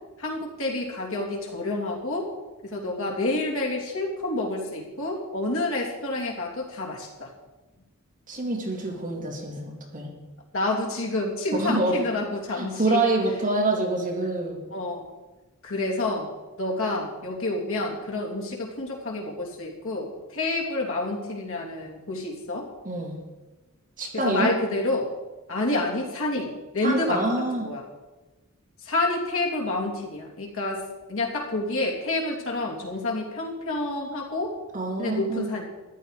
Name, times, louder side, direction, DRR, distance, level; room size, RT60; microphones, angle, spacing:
voice 1, 0.2-2.3 2.6-7.3 10.5-13.0 14.7-15.0 15.6-16.3 16.6-22.7 24.1-25.1 25.5-27.8 28.8-30.8 31.1-34.5 35.0-35.6, left 2 dB, 65° left, -1 dB, 3.0 m, -28 dB
voice 2, 8.3-10.1 11.5-11.9 12.5-14.6 22.8-23.1 24.0-24.5 26.8-27.7 34.7-35.5, right 2 dB, 40° right, -1 dB, 3.1 m, -26 dB
14.0 x 11.5 x 5.1 m, 1.1 s
head